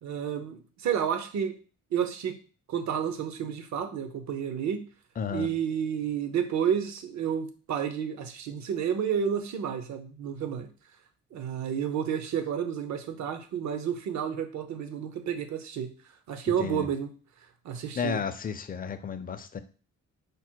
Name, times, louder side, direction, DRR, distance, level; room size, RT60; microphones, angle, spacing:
voice 1, 0.0-1.5 1.9-2.4 2.7-4.8 5.3-10.7 11.3-15.9 16.3-17.1 17.6-18.2, right 8 dB, 65° right, 8 dB, 0.8 m, -30 dB
voice 2, 5.2-5.5 16.5-16.9 18.0-19.6, left 6 dB, 30° left, 10 dB, 0.5 m, -33 dB
5.0 x 2.1 x 4.5 m, 0.37 s
cardioid pair, 90°, 30 cm